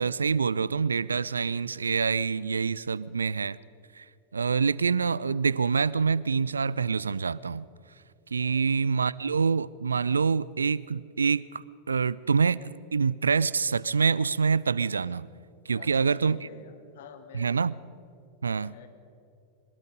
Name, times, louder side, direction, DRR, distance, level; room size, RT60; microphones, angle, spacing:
voice 1, 0.0-3.6 4.0-4.1 4.3-7.7 8.3-15.3 15.7-16.4 17.3-17.8 18.4-18.7, right 5 dB, 75° right, 22 dB, 0.4 m, -26 dB
voice 2, 15.7-17.5 18.4-18.9, left 7 dB, 55° left, 7 dB, 2.0 m, -48 dB
22.5 x 21.5 x 5.3 m, 2.5 s
figure-of-eight pair, 90°, 0 cm